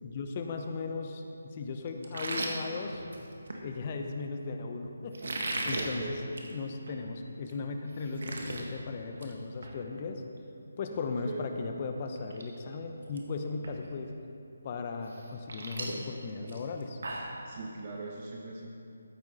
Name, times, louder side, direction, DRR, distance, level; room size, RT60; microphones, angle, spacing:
voice 1, 0.0-3.1 3.6-6.2 6.5-10.2 10.8-14.1 14.6-17.0, left 4 dB, 35° left, 5 dB, 0.9 m, -37 dB
sound 1, 2.0-3.6 5.1-5.9 6.3-6.5 6.9-7.0 7.5-7.6 7.8-8.6 9.0-9.3 9.6-9.8 11.6-11.7 12.2-12.4 12.7-13.2 13.6-13.7 15.1-17.4, right 2 dB, 65° right, 1.7 m, -36 dB
voice 2, 5.8-6.2 10.9-11.4 17.4-18.7, right 4 dB, 40° right, -2 dB, 1.2 m, -41 dB
14.5 x 8.6 x 4.2 m, 2.6 s
figure-of-eight pair, 155°, 0 cm